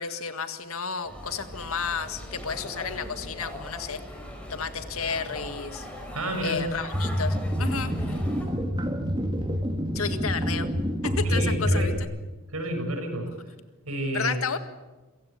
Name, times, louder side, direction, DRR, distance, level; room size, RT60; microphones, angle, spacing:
voice 1, 0.0-4.0 4.5-5.9 6.4-8.2 9.9-10.7 11.0-11.9 14.1-14.6, left 5 dB, 75° left, 9 dB, 1.8 m, -32 dB
sound 1, 1.0-8.5, equal, 5° left, 4.8 m, -40 dB
voice 2, 6.1-6.6 11.2-12.0 12.5-13.3 13.8-14.3, right 1 dB, 80° right, 4 dB, 6.7 m, -30 dB
sound 2, 6.9-12.0, equal, 20° right, 2.0 m, -27 dB
27.0 x 16.5 x 8.6 m, 1.2 s
head